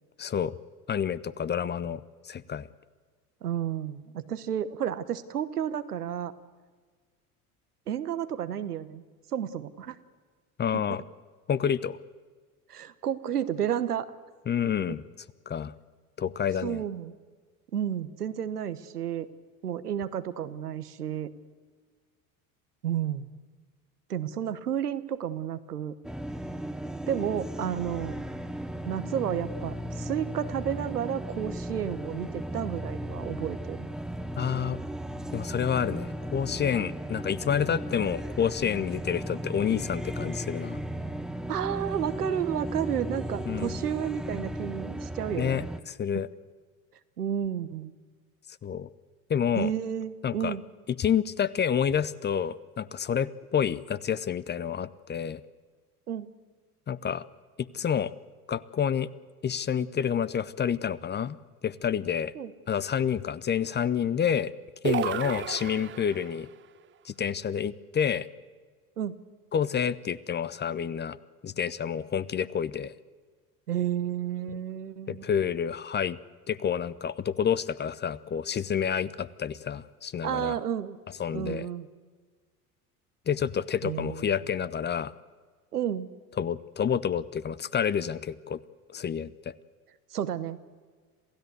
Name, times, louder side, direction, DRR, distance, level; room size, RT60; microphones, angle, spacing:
voice 1, 0.2-0.5 0.9-2.0 2.3-2.7 10.6-11.0 11.5-12.0 14.5-15.0 15.5-15.7 16.2-16.8 34.4-34.8 35.3-40.8 43.5-43.8 45.4-46.3 48.6-48.9 49.3-49.7 50.2-50.5 50.9-55.4 56.9-57.2 57.6-58.1 58.5-59.1 59.4-61.4 61.6-62.3 62.7-64.5 64.8-66.5 67.1-68.3 69.5-71.2 71.4-72.9 75.1-76.2 76.5-80.5 81.2-81.7 83.3-85.1 86.4-88.6 88.9-89.5, left 8 dB, 25° left, 17 dB, 0.7 m, -29 dB
voice 2, 3.4-6.3 7.9-9.0 9.3-10.0 10.7-11.0 12.7-14.1 14.9-15.0 16.6-17.1 17.7-19.3 19.6-21.3 22.8-23.3 24.1-25.9 27.1-28.2 28.9-33.9 41.5-45.6 47.2-47.9 49.5-50.6 56.1-56.3 62.3-62.5 69.0-69.2 73.7-75.3 80.2-81.0 81.3-81.9 83.8-84.3 85.7-86.1 90.1-90.6, right 9 dB, 85° right, 14 dB, 1.1 m, -31 dB
sound 1, 26.0-45.8, right 1 dB, ahead, 0.9 m, -36 dB
sound 2, 64.8-66.4, right 10 dB, 25° right, 0.7 m, -31 dB
27.5 x 16.0 x 8.1 m, 1.5 s
figure-of-eight pair, 70°, 45 cm